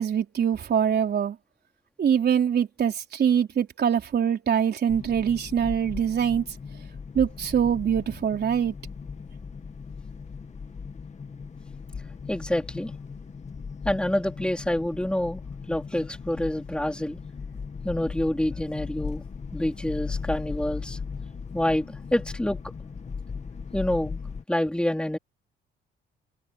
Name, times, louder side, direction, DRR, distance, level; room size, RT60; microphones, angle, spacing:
voice 1, 0.0-1.4 2.0-6.4 7.1-8.7, right 8 dB, 55° right, 4.0 m, -24 dB
sound 1, 4.9-24.4, left 5 dB, 35° left, 1.9 m, -38 dB
voice 2, 12.3-12.9 13.8-15.4 15.7-17.2 17.8-19.2 19.5-21.0 21.5-22.6 23.7-24.2 24.5-25.2, left 1 dB, 5° left, 4.1 m, -27 dB
cardioid pair, 90°, 20 cm